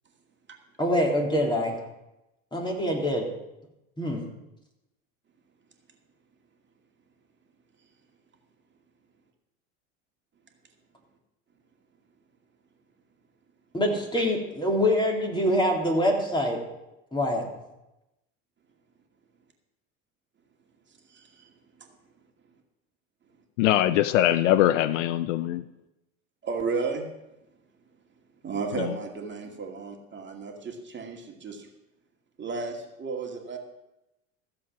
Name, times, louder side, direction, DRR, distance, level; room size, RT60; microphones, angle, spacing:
voice 1, 0.8-1.7 2.5-3.2 4.0-4.2 13.7-16.6 17.1-17.4, left 1 dB, 10° left, -1 dB, 3.4 m, -25 dB
voice 2, 21.1-21.5 21.8-21.9 26.4-27.1 28.4-31.7 32.4-33.6, right 4 dB, 30° right, 1 dB, 2.3 m, -33 dB
voice 3, 23.6-25.6 28.7-28.9, left 13 dB, 70° left, 15 dB, 0.6 m, -22 dB
15.0 x 7.6 x 6.0 m, 0.93 s
hypercardioid pair, 80°, 38 cm